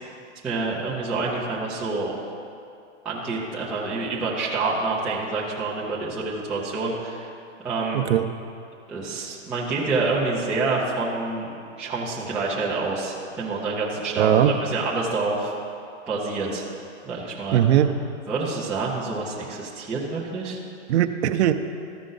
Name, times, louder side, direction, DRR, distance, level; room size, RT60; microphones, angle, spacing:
voice 1, 0.4-2.1 3.0-7.3 7.6-8.1 8.9-11.5 11.8-15.5 16.1-16.6 17.0-17.6 18.3-20.6, right 3 dB, 5° right, -7 dB, 0.3 m, -27 dB
voice 2, 7.9-8.3 14.1-14.5 17.5-17.9 20.9-21.5, right 11 dB, 65° right, 8 dB, 0.6 m, -19 dB
13.5 x 5.0 x 3.8 m, 2.5 s
hypercardioid pair, 145°, 36 cm